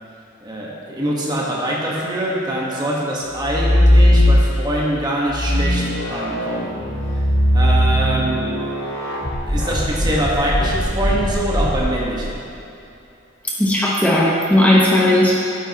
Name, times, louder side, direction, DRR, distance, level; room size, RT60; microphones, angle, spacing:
voice 1, 0.4-6.8 7.5-8.4 9.5-12.4, right 1 dB, 20° right, -3 dB, 1.3 m, -24 dB
sound 1, 3.4-4.8 5.3-12.2, equal, 75° left, 2.1 m, -18 dB
voice 2, 13.6-15.3, left 1 dB, 10° left, -6 dB, 1.0 m, -15 dB
12.5 x 9.5 x 2.9 m, 2.8 s
head